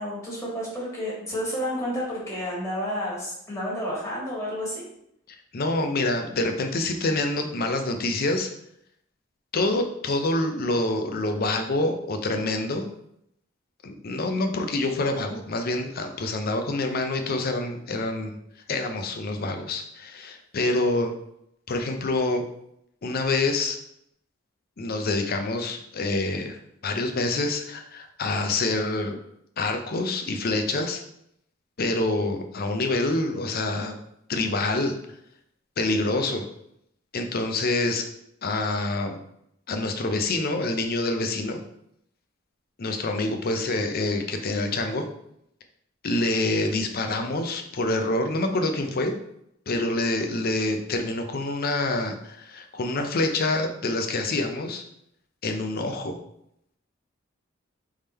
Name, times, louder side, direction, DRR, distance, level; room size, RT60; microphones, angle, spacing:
voice 1, 0.0-4.8, equal, 15° left, -6 dB, 1.7 m, -30 dB
voice 2, 5.5-8.5 9.5-12.9 13.8-18.4 18.7-21.1 21.7-22.4 23.0-23.8 24.8-26.6 26.8-29.2 29.6-31.0 31.8-33.9 34.3-34.9 35.8-36.5 37.1-38.1 38.4-39.2 39.7-41.6 42.8-45.1 46.0-49.1 49.7-54.8 55.4-56.2, left 2 dB, 50° left, 5 dB, 0.6 m, -26 dB
3.6 x 3.5 x 4.2 m, 0.76 s
head